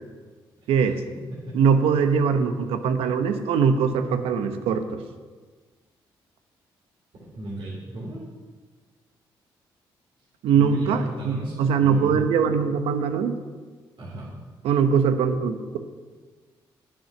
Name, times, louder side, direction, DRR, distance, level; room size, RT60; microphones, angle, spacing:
voice 1, 0.7-1.0 1.5-5.0 10.4-13.4 14.6-15.8, right 6 dB, 85° right, 8 dB, 0.9 m, -22 dB
voice 2, 7.3-8.2 10.5-12.3 14.0-14.3, right 1 dB, 60° right, -8 dB, 3.9 m, -35 dB
10.5 x 8.7 x 6.0 m, 1.4 s
supercardioid pair, 55°, 10 cm